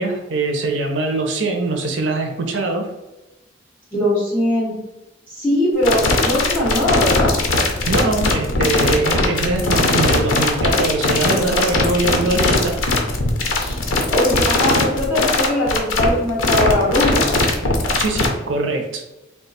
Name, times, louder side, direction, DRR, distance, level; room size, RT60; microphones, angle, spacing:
voice 1, 0.0-2.9 7.9-12.8 18.0-19.0, right 2 dB, 70° right, 3 dB, 0.6 m, -22 dB
voice 2, 3.9-4.7 5.3-7.3 13.6-13.8 14.1-17.4, left 1 dB, 5° left, -10 dB, 1.3 m, -20 dB
sound 1, 5.8-18.3, left 2 dB, 85° left, 0.7 m, -19 dB
3.6 x 2.3 x 4.0 m, 1.0 s
head